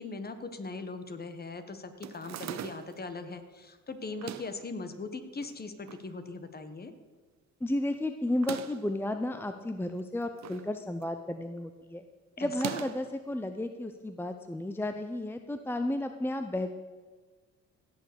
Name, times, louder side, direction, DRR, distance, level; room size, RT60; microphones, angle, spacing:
voice 1, 0.0-6.9 12.4-12.8, left 3 dB, 30° left, 9 dB, 1.4 m, -40 dB
sound 1, 2.0-3.0 4.1-4.6 5.4-6.1 6.4-6.5 6.7-6.8 8.3-8.9 9.9-10.7 11.0-11.3 12.5-13.1, right 11 dB, 65° right, 0.7 m, -41 dB
voice 2, 7.6-12.0 12.4-16.7, left 1 dB, 5° left, 7 dB, 0.7 m, -33 dB
16.5 x 6.9 x 6.9 m, 1.4 s
cardioid pair, 90°, 30 cm